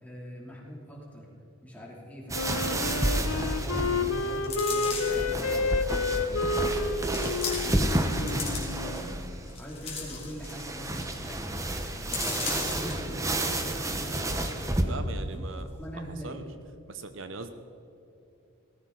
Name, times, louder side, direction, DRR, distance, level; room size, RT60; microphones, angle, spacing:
voice 1, 0.0-1.3 1.6-6.9 7.9-15.0 15.3-15.5 15.8-16.4, equal, 5° left, -4 dB, 3.0 m, -42 dB
Wind instrument woodwind instrument, 2.3-9.1, left 3 dB, 90° left, 0.8 m, -30 dB
sound 1, 2.3-14.8, right 1 dB, 15° right, 1.0 m, -31 dB
sound 2, 4.4-5.3 6.0-6.1 7.0-7.9 8.1-9.0 9.5-10.6 11.0-11.1 11.4-11.6 12.1-12.9 13.4-13.5, left 5 dB, 30° left, 3.0 m, -36 dB
voice 2, 14.9-15.7 15.9-16.5 16.9-17.5, right 3 dB, 65° right, 9 dB, 0.8 m, -40 dB
18.0 x 15.0 x 4.0 m, 2.8 s
head